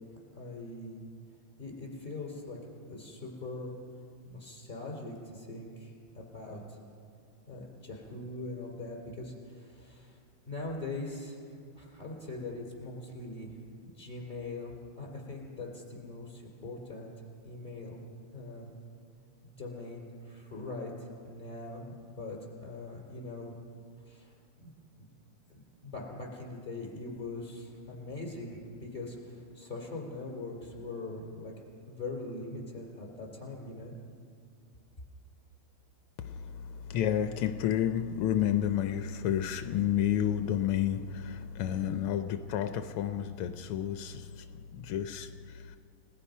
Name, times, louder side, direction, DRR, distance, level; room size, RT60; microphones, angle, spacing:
voice 1, 0.3-1.0 1.6-2.6 2.9-3.7 4.2-6.8 7.5-10.2 10.4-11.4 11.7-13.5 13.8-17.1 17.4-18.0 18.3-18.7 19.4-20.9 21.2-23.6 24.1-24.7 25.0-25.1 25.5-31.5 31.9-33.9, left 2 dB, 20° left, -1 dB, 4.8 m, -42 dB
voice 2, 36.9-44.3 44.7-45.3, left 10 dB, 85° left, 9 dB, 1.6 m, -30 dB
30.0 x 18.0 x 5.5 m, 2.3 s
omnidirectional pair, 2.4 m